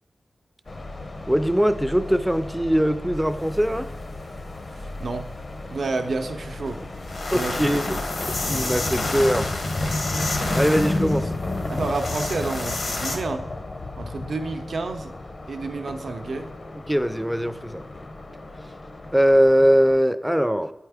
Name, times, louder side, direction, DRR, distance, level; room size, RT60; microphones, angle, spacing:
sound 1, 0.7-20.0, left 2 dB, 45° left, 0.5 m, -33 dB
voice 1, 1.3-3.9 7.3-9.5 10.5-11.3 16.9-17.8 19.1-20.7, equal, 5° right, 11 dB, 0.3 m, -21 dB
voice 2, 4.7-5.3 5.7-6.8 7.3-7.7 8.4-8.7 9.8-9.9 11.7-13.4 14.0-15.1 15.5-16.5, right 3 dB, 75° right, 6 dB, 0.6 m, -30 dB
sound 2, 6.7-6.8 7.0-13.2, left 2 dB, 80° left, 1.0 m, -30 dB
8.6 x 4.5 x 3.4 m, 1.0 s
wide cardioid pair, 115°, 0 cm